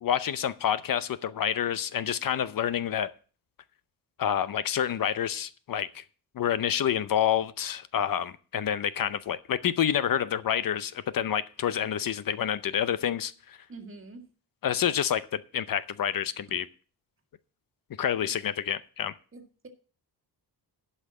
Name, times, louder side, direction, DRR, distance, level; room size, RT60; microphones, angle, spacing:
voice 1, 0.0-3.1 4.2-6.0 6.4-13.6 14.6-16.7 18.0-19.1, left 9 dB, 55° left, 0.7 m, -28 dB
voice 2, 13.7-14.3 18.3-18.4 19.3-19.7, right 3 dB, 30° right, 1.9 m, -46 dB
11.5 x 5.7 x 7.5 m
cardioid pair, 120°, 40 cm